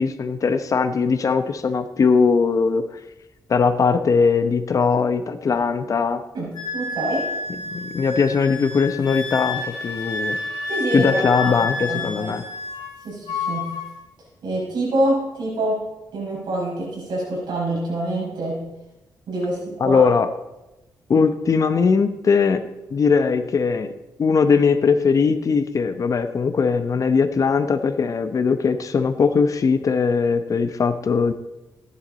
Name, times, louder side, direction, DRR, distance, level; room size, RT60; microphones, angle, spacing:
voice 1, 0.0-2.9 3.5-6.2 7.7-10.4 10.9-12.4 19.8-20.3 21.1-22.6 22.9-23.9 24.2-31.3, left 5 dB, 45° left, 10 dB, 0.8 m, -20 dB
voice 2, 6.3-7.3 10.7-12.4 13.0-13.7 14.4-15.8 16.1-18.6 19.3-20.0, right 1 dB, 80° right, -5 dB, 5.5 m, -26 dB
Wind instrument woodwind instrument, 6.5-13.0 13.3-13.9, left 3 dB, 65° left, 3.4 m, -29 dB
14.0 x 11.0 x 4.0 m, 1.0 s
wide cardioid pair, 115°, 8 cm